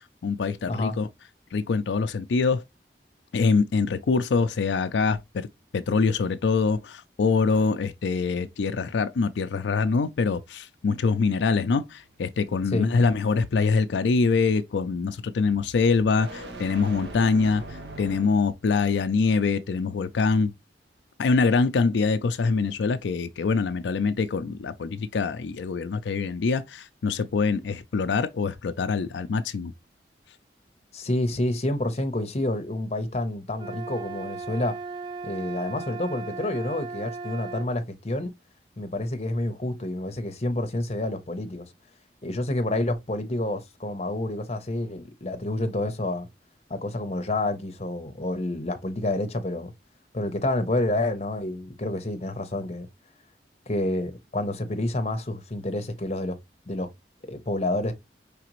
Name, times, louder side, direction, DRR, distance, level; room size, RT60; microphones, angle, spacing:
voice 1, 0.2-1.1 1.5-2.6 3.3-5.5 5.7-17.6 18.0-20.5 21.2-29.7, left 4 dB, 85° left, 0.4 m, -24 dB
sound 1, 11.6-18.6, right 1 dB, 75° right, 1.1 m, -43 dB
voice 2, 30.9-34.7 35.2-38.3 38.8-41.7 42.2-46.3 46.7-49.7 50.1-52.9 53.7-56.4 56.7-56.9 57.3-57.9, left 1 dB, 35° left, 0.8 m, -28 dB
sound 2, 33.6-37.7, right 4 dB, 25° right, 0.5 m, -37 dB
4.9 x 3.4 x 3.0 m
head